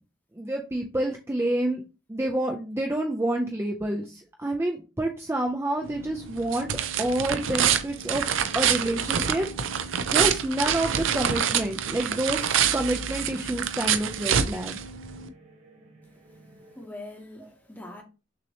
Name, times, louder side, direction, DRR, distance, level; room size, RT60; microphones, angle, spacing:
voice 1, 0.3-1.8 2.1-6.7 7.0-8.3 8.5-9.5 9.8-9.9 10.1-14.8 17.4-17.5, right 1 dB, 15° right, 0.4 m, -28 dB
sound 1, 5.8-15.3, right 8 dB, 75° right, 0.5 m, -27 dB
sound 2, 6.9-16.9, right 1 dB, 35° right, 1.2 m, -53 dB
voice 2, 16.3-18.0, left 2 dB, 10° left, 0.9 m, -43 dB
6.2 x 2.8 x 2.8 m
head